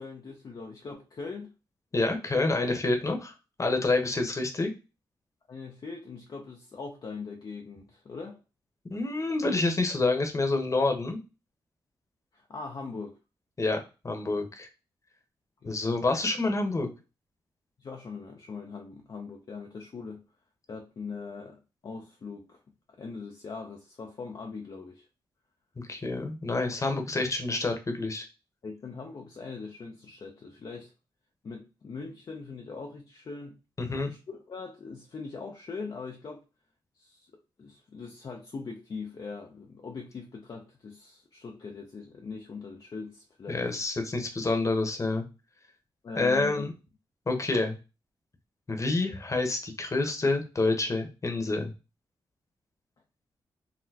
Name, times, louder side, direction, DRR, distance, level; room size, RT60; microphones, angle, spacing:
voice 1, 0.0-1.5 5.5-8.4 12.3-13.2 15.6-15.8 17.8-20.2 20.7-22.6 22.9-25.1 28.6-30.9 31.4-33.5 34.0-36.4 37.0-37.3 37.6-43.7 46.0-46.7, left 4 dB, 50° left, 0.6 m, -41 dB
voice 2, 1.9-4.7 8.9-11.2 13.6-13.8 14.0-14.7 15.7-16.9 25.9-28.2 33.8-34.1 43.5-45.2 46.2-46.7 47.3-47.8 48.7-51.7, left 3 dB, 35° left, 1.0 m, -28 dB
4.0 x 2.1 x 2.7 m
cardioid pair, 55°, 9 cm